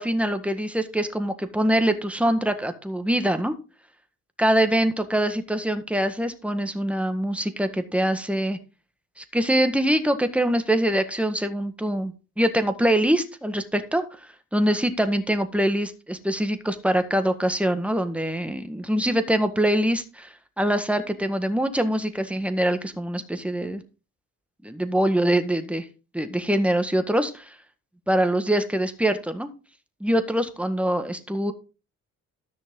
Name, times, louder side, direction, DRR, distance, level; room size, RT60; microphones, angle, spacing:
voice 1, 0.0-3.5 4.4-8.6 9.2-14.2 14.5-23.8 24.6-25.8 26.1-27.5 28.1-29.5 30.0-31.5, right 1 dB, 5° right, 8 dB, 1.6 m, -24 dB
13.5 x 6.3 x 3.8 m, 0.33 s
cardioid pair, 90°, 30 cm